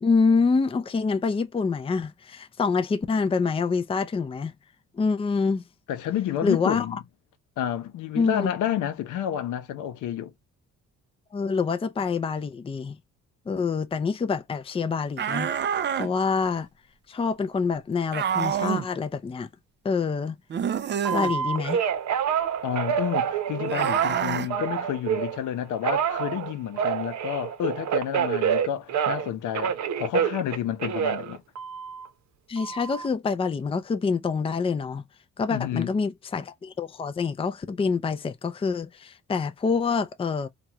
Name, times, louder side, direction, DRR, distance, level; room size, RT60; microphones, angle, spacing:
voice 1, 0.0-4.5 5.0-5.6 6.4-6.9 8.2-8.5 11.3-13.0 13.5-15.5 15.9-16.7 17.1-19.5 19.8-20.4 21.1-21.8 32.5-35.0 35.4-40.5, left 5 dB, 20° left, 0.5 m, -26 dB
voice 2, 5.9-7.0 7.6-10.3 22.6-31.4 35.5-35.9, left 10 dB, 80° left, 0.8 m, -30 dB
sound 1, 15.2-16.1 18.1-18.9 20.5-21.3 23.7-24.5, right 8 dB, 35° right, 0.5 m, -27 dB
Telephone, 21.0-25.4 25.8-29.3 29.5-32.1 32.6-33.1, right 8 dB, 65° right, 0.8 m, -27 dB
3.0 x 2.4 x 2.8 m
cardioid pair, 90°, 30 cm